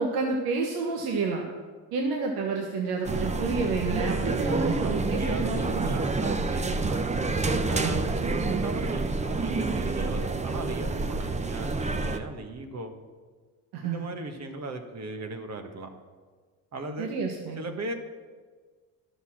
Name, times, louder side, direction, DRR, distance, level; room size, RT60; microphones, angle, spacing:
voice 1, 0.0-1.4 1.9-6.0 7.8-8.0 13.7-14.0 17.0-17.6, right 4 dB, 75° right, 1 dB, 1.3 m, -29 dB
sound 1, 3.0-12.2, right 3 dB, 20° right, 0.7 m, -28 dB
voice 2, 4.0-7.0 7.6-12.9 13.8-15.9 16.7-17.1 17.6-17.9, right 2 dB, 40° right, 6 dB, 1.5 m, -37 dB
11.5 x 6.8 x 6.1 m, 1.5 s
supercardioid pair, 75°, 39 cm